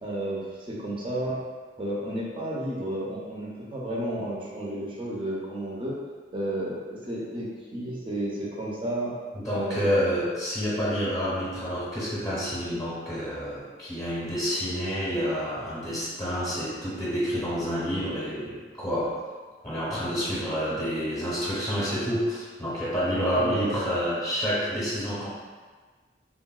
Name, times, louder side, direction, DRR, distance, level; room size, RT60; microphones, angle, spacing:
voice 1, 0.0-1.4 1.8-6.0 6.3-9.1 9.5-9.8 23.3-23.7, right 1 dB, 30° right, -5 dB, 0.5 m, -32 dB
voice 2, 9.3-19.2 19.6-25.3, equal, 20° left, -10 dB, 0.7 m, -28 dB
3.6 x 2.2 x 2.3 m, 1.4 s
head